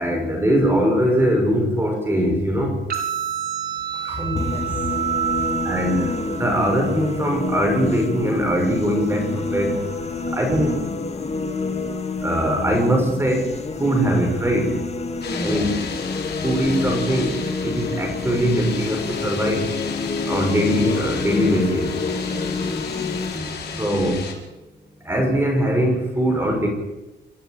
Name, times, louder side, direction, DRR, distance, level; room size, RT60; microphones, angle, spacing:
voice 1, 0.0-2.8 4.0-4.2 5.6-9.8 10.3-10.8 12.2-13.5 13.8-14.7 15.4-15.7 16.4-19.7 20.3-21.9 23.8-24.2 25.1-26.7, equal, 10° right, 2 dB, 6.2 m, -21 dB
sound 1, 2.9-10.9, right 9 dB, 55° right, 4.7 m, -31 dB
voice 2, 4.2-5.0 5.3-5.5 15.3-15.7 22.3-24.0, left 1 dB, 10° left, 2 dB, 6.2 m, -31 dB
sound 2, 4.4-23.4, left 4 dB, 35° left, 2.1 m, -28 dB
sound 3, 15.2-24.3, left 6 dB, 65° left, 5.4 m, -33 dB
28.5 x 15.0 x 9.3 m, 1.0 s
cardioid pair, 135°, 19 cm